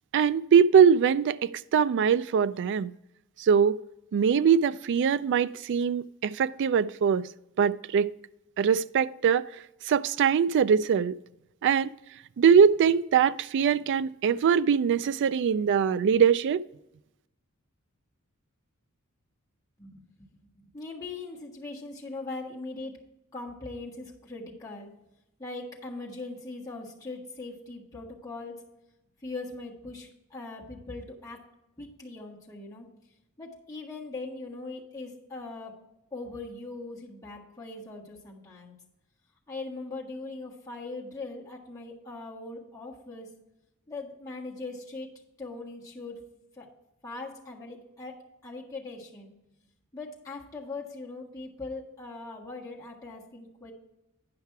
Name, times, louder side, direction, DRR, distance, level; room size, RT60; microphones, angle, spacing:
voice 1, 0.1-2.9 3.4-3.8 4.1-7.3 7.6-8.1 8.6-9.5 9.8-11.2 11.6-11.9 12.4-16.6, right 7 dB, 55° right, 0.3 m, -22 dB
voice 2, 19.8-20.3 20.5-22.9 23.3-24.9 25.4-28.6 29.2-31.4 31.8-32.9 33.4-35.8 36.1-38.7 39.5-43.3 43.9-45.1 45.4-46.2 46.6-46.7 47.0-49.3 49.9-53.7, left 3 dB, 15° left, 1.6 m, -40 dB
9.6 x 5.7 x 4.6 m
head